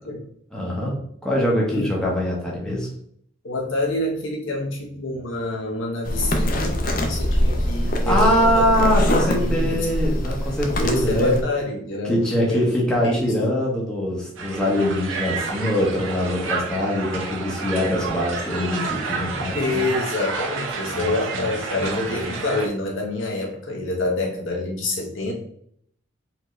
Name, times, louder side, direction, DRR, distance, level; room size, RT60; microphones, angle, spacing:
voice 1, 0.5-0.9 1.2-2.9 7.9-11.4 12.0-19.9 20.9-22.3, left 1 dB, 5° left, -4 dB, 1.0 m, -23 dB
voice 2, 1.7-2.0 3.4-8.6 9.0-9.9 10.8-13.3 19.5-25.3, left 2 dB, 85° left, -1 dB, 1.1 m, -27 dB
sound 1, 6.0-11.4, equal, 45° left, 0.6 m, -23 dB
Crowd, 14.4-22.7, right 4 dB, 85° right, 0.7 m, -30 dB
4.3 x 2.8 x 3.2 m, 0.66 s
head